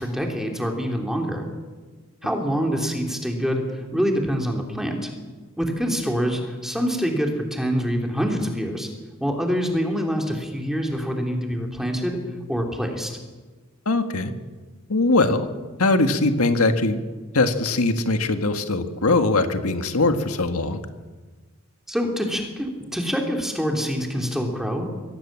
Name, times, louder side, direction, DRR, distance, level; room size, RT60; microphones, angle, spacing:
voice 1, 0.0-1.4 2.2-5.1 5.6-8.9 9.2-12.2 12.5-13.2 21.9-24.9, equal, ahead, 1 dB, 3.0 m, -25 dB
voice 2, 13.8-14.3 14.9-15.5 15.8-17.0 17.3-20.8, left 2 dB, 85° left, 7 dB, 1.7 m, -21 dB
24.0 x 17.0 x 7.4 m, 1.4 s
head